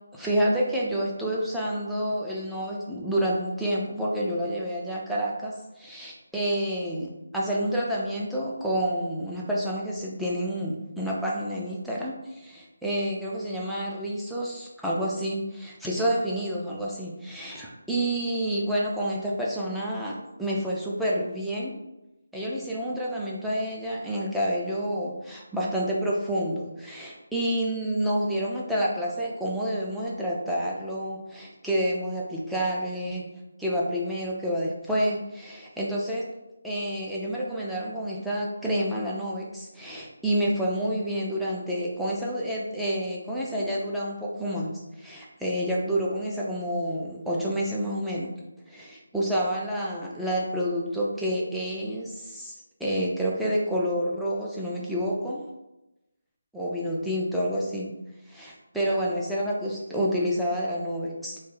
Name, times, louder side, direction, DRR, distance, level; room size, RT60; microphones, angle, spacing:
voice 1, 0.1-21.7 22.3-33.3 33.6-36.3 36.6-48.3 48.7-52.5 52.8-55.4 56.5-58.0 58.3-61.4, equal, ahead, -6 dB, 0.3 m, -29 dB
3.0 x 2.3 x 3.7 m, 0.97 s
figure-of-eight pair, 175°, 0 cm